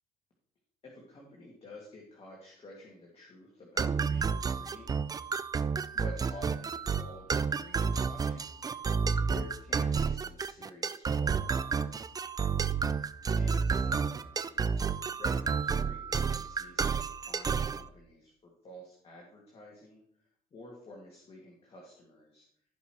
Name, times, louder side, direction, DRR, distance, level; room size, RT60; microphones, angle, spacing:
voice 1, 0.8-5.0 5.9-8.6 9.0-11.7 13.4-14.8 15.2-22.5, left 1 dB, 35° left, -2 dB, 2.2 m, -51 dB
sound 1, 3.8-17.8, right 5 dB, 20° right, 0.4 m, -30 dB
15.5 x 5.5 x 3.1 m, 0.64 s
cardioid pair, 110°, 17 cm